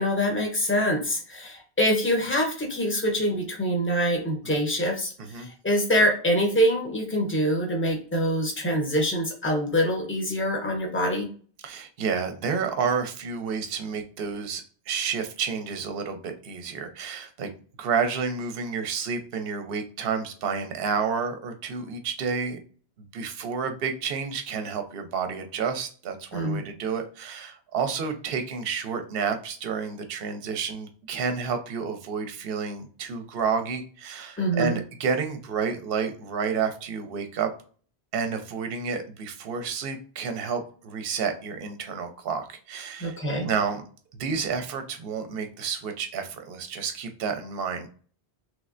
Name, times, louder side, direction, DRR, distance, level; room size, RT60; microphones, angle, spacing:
voice 1, 0.0-5.1 5.4-11.3 26.3-26.6 34.4-34.8 43.0-43.5, equal, 15° left, 1 dB, 0.8 m, -25 dB
voice 2, 5.2-5.5 11.6-17.5 17.8-22.6 23.1-37.5 38.1-43.2 43.4-43.8 44.2-47.9, right 6 dB, 65° right, 7 dB, 0.8 m, -30 dB
3.2 x 3.1 x 2.5 m, 0.41 s
omnidirectional pair, 1.1 m